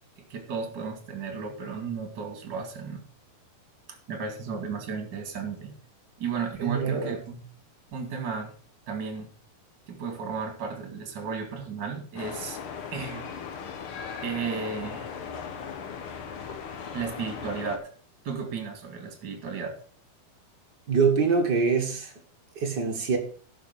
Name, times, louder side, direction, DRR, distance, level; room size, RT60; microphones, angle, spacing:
voice 1, 0.2-3.0 3.9-5.7 6.2-7.4 7.9-8.5 8.9-9.3 9.9-12.6 12.9-13.3 14.2-15.1 16.9-17.9 18.2-19.7, right 5 dB, 35° right, 2.4 m, -34 dB
voice 2, 6.6-7.1 20.9-22.1 22.5-23.2, right 5 dB, 50° right, 1.2 m, -24 dB
sound 1, 12.2-17.8, left 6 dB, 80° left, 1.2 m, -38 dB
11.5 x 6.7 x 5.4 m
omnidirectional pair, 4.4 m